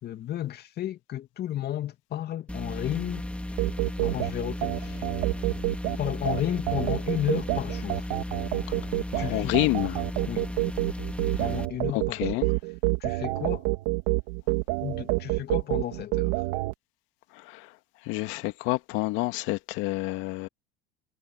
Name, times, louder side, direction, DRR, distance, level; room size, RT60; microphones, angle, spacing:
voice 1, 0.0-3.2 4.0-5.0 6.0-8.1 9.2-9.5 10.3-10.5 11.4-12.4 13.0-13.7 14.8-16.4, left 12 dB, 50° left, 2.7 m, -33 dB
sound 1, 2.5-11.7, left 1 dB, 5° left, 4.7 m, -35 dB
sound 2, 3.6-16.7, right 24 dB, 75° right, 3.2 m, -28 dB
voice 2, 9.1-10.0 11.9-12.5 17.5-17.7 18.1-20.5, left 21 dB, 70° left, 2.2 m, -28 dB
supercardioid pair, 85°, 21 cm